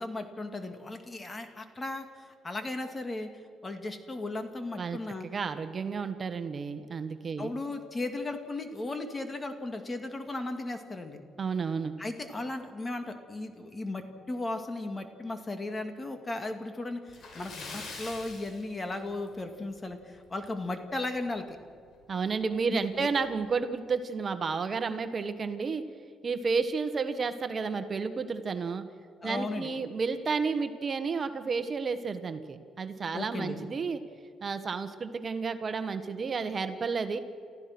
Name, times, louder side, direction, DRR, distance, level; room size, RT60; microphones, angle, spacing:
voice 1, 0.0-3.3 3.6-5.3 7.4-11.2 12.0-21.5 22.7-23.1 29.2-29.7 33.1-33.6, left 2 dB, 25° left, 6 dB, 2.4 m, -36 dB
voice 2, 5.2-7.5 11.4-11.9 22.1-25.8 26.2-28.8 29.2-34.0 34.4-37.2, right 5 dB, 40° right, 9 dB, 1.3 m, -31 dB
Splash splatter, 17.1-19.5 19.8-19.9 20.4-20.5 21.9-22.0 22.3-22.4 23.1-23.3, left 3 dB, 60° left, 6.0 m, -43 dB
30.0 x 14.5 x 6.1 m, 2.2 s
cardioid pair, 90°, 0 cm